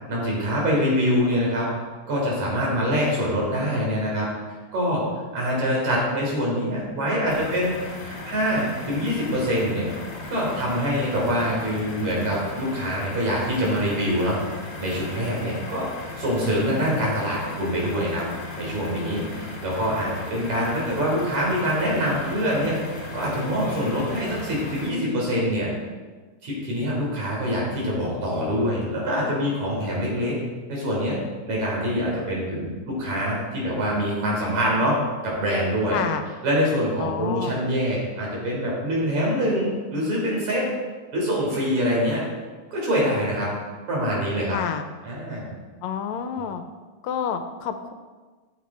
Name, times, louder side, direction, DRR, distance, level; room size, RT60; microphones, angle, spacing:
voice 1, 0.1-1.7 2.1-4.3 4.7-9.9 10.3-14.4 14.8-18.2 18.6-22.8 23.1-25.7 26.4-30.3 30.7-31.2 31.5-35.0 35.2-36.0 36.4-40.7 41.1-42.2 42.7-43.5 43.9-44.6 45.0-45.5 46.4-46.5, equal, 70° right, -3 dB, 4.8 m, -25 dB
sound 1, 7.3-24.9, left 2 dB, 35° left, 2.4 m, -37 dB
voice 2, 35.9-36.3 37.0-37.6 44.5-44.9 45.8-46.6 47.0-47.9, left 8 dB, 75° left, 8 dB, 1.9 m, -29 dB
13.5 x 7.7 x 4.3 m, 1.4 s
omnidirectional pair, 3.3 m